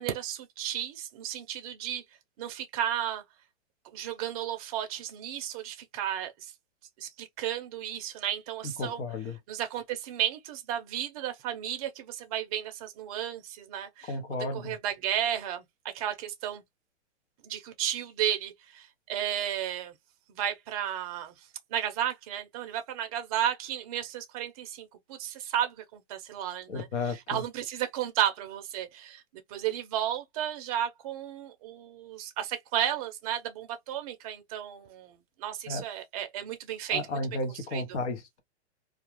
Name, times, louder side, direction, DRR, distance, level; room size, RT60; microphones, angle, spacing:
voice 1, 0.0-2.0 2.4-3.2 3.8-6.5 7.0-9.0 9.5-15.6 15.9-16.6 17.4-19.9 20.3-21.3 21.7-29.2 29.5-37.2 37.7-38.0, right 10 dB, 35° right, 0.5 m, -33 dB
voice 2, 8.8-9.4 14.1-14.8 26.7-27.4 35.7-35.8 36.9-38.4, left 2 dB, 75° left, 0.9 m, -33 dB
2.4 x 2.2 x 2.9 m
hypercardioid pair, 145°, 35 cm